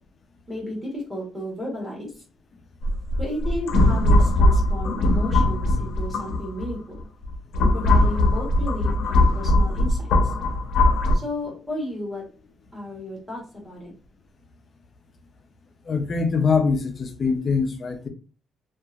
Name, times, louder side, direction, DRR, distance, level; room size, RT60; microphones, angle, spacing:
voice 1, 0.5-2.1 3.2-7.1 7.7-10.3 11.1-12.2 12.7-13.9, left 1 dB, 5° right, 1.3 m, -33 dB
sound 1, 2.8-6.7 7.2-11.2, left 1 dB, 75° left, 0.6 m, -20 dB
voice 2, 15.9-18.1, left 5 dB, 35° left, 0.5 m, -23 dB
2.8 x 2.4 x 2.3 m
cardioid pair, 175°, 0 cm